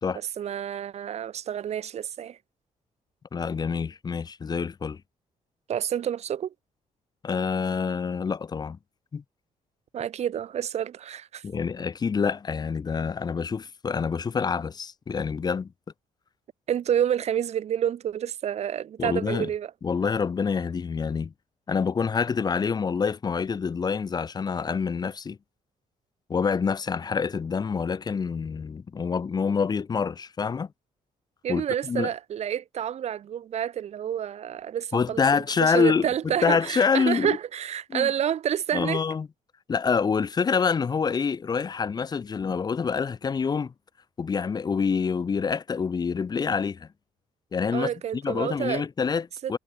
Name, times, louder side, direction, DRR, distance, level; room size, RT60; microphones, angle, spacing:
voice 1, 0.1-2.4 5.7-6.5 9.9-11.4 16.7-19.7 31.4-35.2 35.6-39.0 47.7-48.8 49.4-49.5, right 9 dB, 50° right, 1.2 m, -29 dB
voice 2, 3.3-5.0 7.2-8.8 9.1-9.2 11.4-15.7 19.0-19.5 19.8-21.3 21.7-25.4 26.3-30.7 31.5-32.1 34.9-37.4 37.9-38.1 38.7-39.3 39.7-43.7 44.2-46.9 47.5-49.6, left 5 dB, 30° left, 1.3 m, -26 dB
cardioid pair, 155°, 14 cm